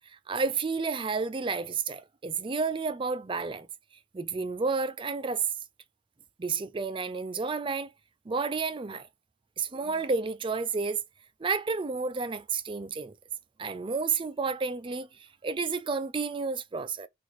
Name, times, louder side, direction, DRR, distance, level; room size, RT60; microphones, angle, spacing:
voice 1, 0.3-3.7 4.1-5.4 6.4-7.9 8.3-9.1 9.6-11.0 11.4-13.1 13.6-15.1 15.4-17.1, right 4 dB, 25° right, 0.4 m, -31 dB
6.1 x 2.6 x 3.4 m
head